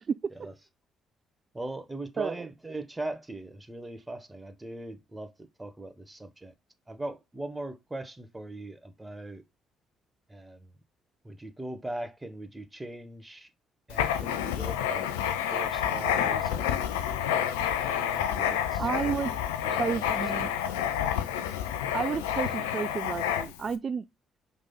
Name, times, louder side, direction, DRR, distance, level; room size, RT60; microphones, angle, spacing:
voice 1, 1.5-6.5 6.9-9.4 10.3-10.7 11.2-13.5 13.9-15.1 15.5-16.9 17.9-20.5, right 2 dB, 15° right, 1.5 m, -40 dB
Writing, 13.9-23.7, left 9 dB, 85° left, 0.5 m, -29 dB
voice 2, 18.8-19.3 19.8-20.5 21.9-24.0, right 6 dB, 45° right, 0.3 m, -31 dB
5.1 x 4.0 x 5.6 m
hypercardioid pair, 45°, 0 cm